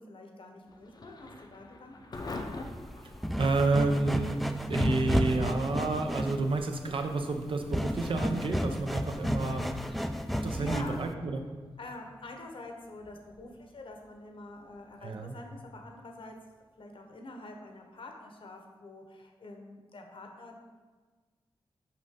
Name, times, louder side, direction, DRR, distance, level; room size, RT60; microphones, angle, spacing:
voice 1, 0.0-2.3 10.2-11.0 11.8-16.4 16.8-20.6, left 2 dB, 65° left, 2 dB, 1.0 m, -46 dB
Thunder / Rain, 0.6-17.4, left 2 dB, 45° left, 0.6 m, -50 dB
sound 1, 2.2-11.1, equal, ahead, 0.4 m, -32 dB
voice 2, 3.4-4.4 4.7-9.7 10.4-11.4 15.0-15.3, right 3 dB, 65° right, 4 dB, 0.7 m, -30 dB
5.9 x 5.2 x 3.7 m, 1.4 s
cardioid pair, 70°, 10 cm